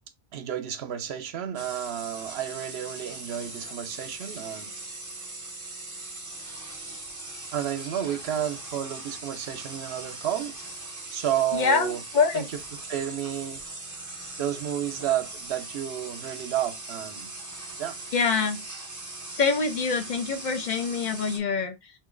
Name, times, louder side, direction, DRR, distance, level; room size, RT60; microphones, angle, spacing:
voice 1, 0.3-4.7 7.5-10.5 11.1-12.0 12.3-12.4 12.9-13.6 14.4-17.3 17.8-18.0, right 10 dB, 85° right, 0.9 m, -31 dB
sound 1, 1.6-21.4, right 2 dB, 20° right, 0.7 m, -40 dB
voice 2, 11.5-12.4 18.1-18.6 19.3-21.9, left 5 dB, 55° left, 0.6 m, -25 dB
2.9 x 2.7 x 3.7 m
omnidirectional pair, 1.0 m